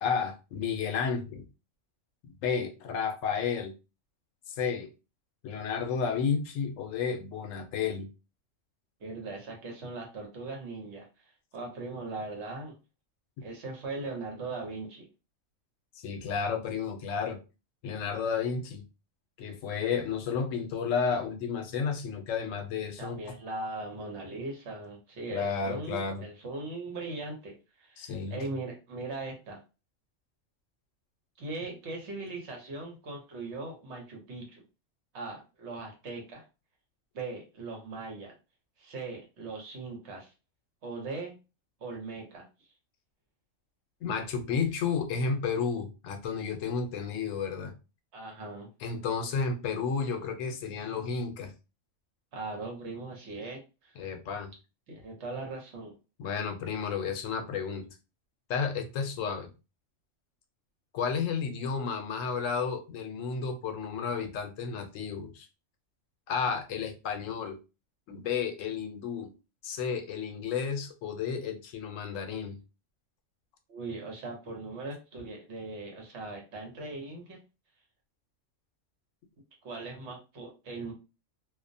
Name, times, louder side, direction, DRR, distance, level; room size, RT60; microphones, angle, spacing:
voice 1, 0.0-1.5 2.4-3.7 4.5-4.9 5.4-8.1 13.4-13.5 16.0-17.4 17.8-18.8 19.4-23.2 25.3-26.2 28.0-28.4 44.0-47.7 48.8-51.5 54.0-54.5 56.2-57.9 58.5-59.5 60.9-65.5 66.3-67.6 68.1-69.3 69.6-72.6, left 6 dB, 80° left, 0.9 m, -32 dB
voice 2, 9.0-12.7 13.4-15.1 23.0-29.6 31.4-34.6 35.1-36.4 37.1-38.3 38.8-40.3 40.8-41.3 41.8-42.5 48.1-48.7 52.3-53.9 54.9-55.9 73.7-77.4 79.6-80.9, right 3 dB, 65° right, 1.0 m, -39 dB
2.5 x 2.1 x 2.5 m
omnidirectional pair, 1.3 m